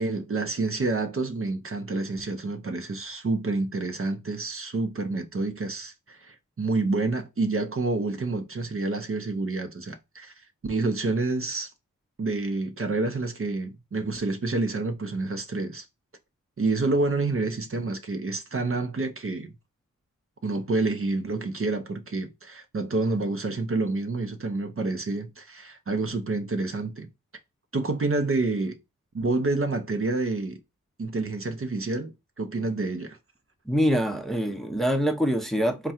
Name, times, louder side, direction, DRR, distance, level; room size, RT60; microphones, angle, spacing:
voice 1, 0.0-10.3 10.6-11.7 12.2-15.9 16.6-19.5 20.4-27.1 27.7-28.8 29.1-30.6 31.0-33.2, right 3 dB, 45° right, 0.7 m, -28 dB
voice 2, 33.7-35.9, equal, ahead, 0.7 m, -25 dB
3.6 x 2.2 x 4.2 m
cardioid pair, 50°, 31 cm